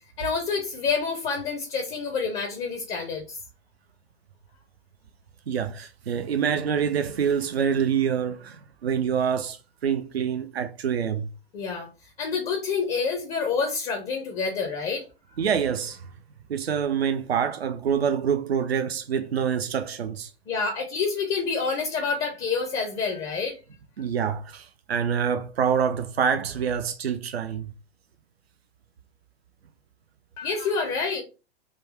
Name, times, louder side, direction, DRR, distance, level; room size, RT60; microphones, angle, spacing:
voice 1, 0.2-3.4 11.5-11.9 12.2-15.0 20.5-23.6 30.4-31.2, left 5 dB, 20° left, 0.5 m, -28 dB
voice 2, 5.5-9.6 9.8-11.3 15.4-16.0 16.5-20.3 24.0-27.7, right 7 dB, 75° right, 0.5 m, -26 dB
3.8 x 2.1 x 3.1 m
figure-of-eight pair, 100°, 31 cm